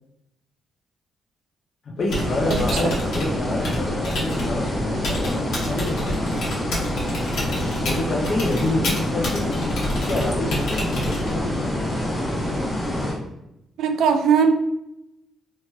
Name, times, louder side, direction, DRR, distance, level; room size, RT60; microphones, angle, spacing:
voice 1, 1.9-6.2 7.9-9.6 9.9-11.8, left 2 dB, 50° left, -1 dB, 0.5 m, -28 dB
Typing, 2.0-11.5, left 1 dB, 80° left, 1.1 m, -30 dB
sound 1, 2.1-13.1, left 1 dB, 25° left, 1.3 m, -26 dB
voice 2, 2.5-2.9 13.8-14.5, right 6 dB, 75° right, 7 dB, 0.3 m, -20 dB
2.9 x 2.8 x 2.2 m, 0.85 s
cardioid pair, 90°, 0 cm